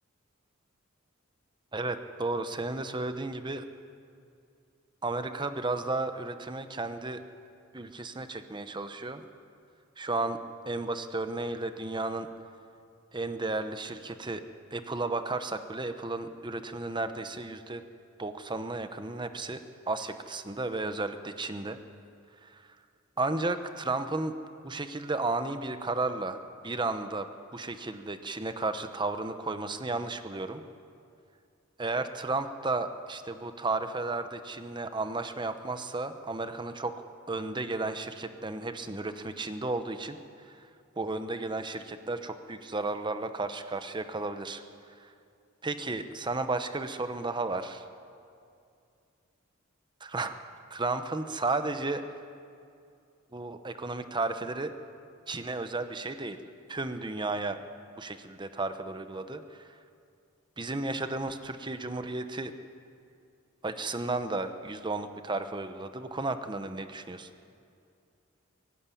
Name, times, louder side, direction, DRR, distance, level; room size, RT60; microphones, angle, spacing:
voice 1, 1.7-3.7 5.0-7.2 7.7-9.2 10.0-10.4 10.6-12.3 13.1-14.4 14.7-17.8 18.2-21.8 22.4-22.7 23.2-24.3 24.6-30.6 31.8-37.0 37.3-40.2 40.5-40.7 41.0-44.6 45.0-45.1 45.6-47.8 50.0-50.4 50.7-52.1 53.3-54.7 55.3-56.4 56.7-57.6 58.0-59.7 60.6-62.5 63.6-67.3, right 3 dB, 20° right, 9 dB, 1.0 m, -33 dB
23.0 x 11.5 x 10.0 m, 2.4 s
head